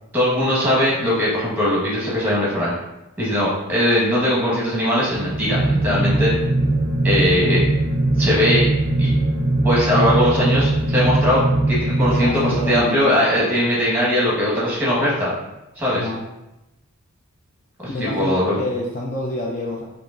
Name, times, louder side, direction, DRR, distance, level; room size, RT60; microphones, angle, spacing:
voice 1, 0.1-2.8 3.2-6.3 7.0-7.6 8.2-8.6 9.0-9.1 9.6-11.4 11.7-15.3 15.7-16.1 17.8-18.6, equal, 10° right, -7 dB, 1.4 m, -20 dB
sound 1, 5.0-13.4, right 2 dB, 35° right, 0.5 m, -20 dB
voice 2, 12.0-13.5 15.9-16.2 17.9-19.8, left 2 dB, 35° left, -2 dB, 0.4 m, -28 dB
4.9 x 2.9 x 2.6 m, 0.94 s
head